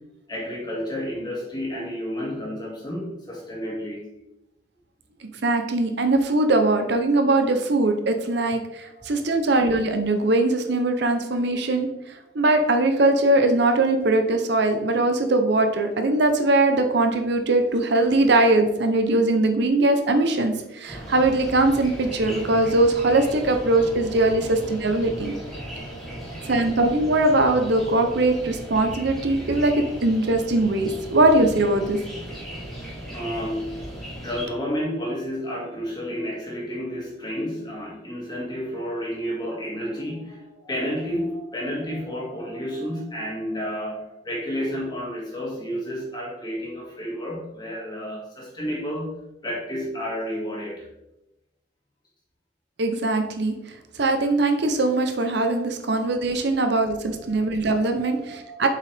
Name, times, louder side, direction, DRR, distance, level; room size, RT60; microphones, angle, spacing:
voice 1, 0.3-4.0 8.8-9.2 24.5-24.6 25.6-26.8 30.9-31.0 32.3-33.9 34.2-49.1 49.4-50.9 55.9-56.2 56.5-57.5 57.8-58.7, equal, 20° left, -3 dB, 2.0 m, -31 dB
voice 2, 5.4-25.3 26.4-32.0 52.8-53.5 53.9-58.7, right 2 dB, 60° right, 6 dB, 0.7 m, -21 dB
sound 1, 20.9-34.5, right 1 dB, ahead, 2.7 m, -37 dB
7.6 x 5.5 x 3.5 m, 0.95 s
head